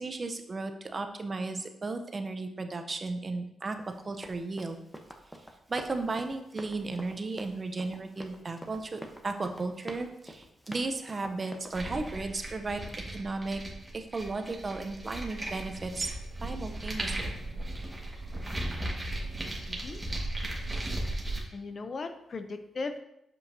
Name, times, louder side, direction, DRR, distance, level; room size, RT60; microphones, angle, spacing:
voice 1, 0.0-3.8 4.1-4.8 5.7-13.6 13.9-16.1 16.4-17.3, right 3 dB, 40° right, 7 dB, 0.7 m, -35 dB
Run, 3.8-12.2, equal, 5° left, 0.9 m, -47 dB
sound 1, 11.7-21.4, right 1 dB, 15° right, 1.5 m, -36 dB
voice 2, 19.7-20.0 21.5-23.0, left 3 dB, 50° left, 8 dB, 0.6 m, -37 dB
7.1 x 5.4 x 2.7 m, 0.82 s
cardioid pair, 80°, 0 cm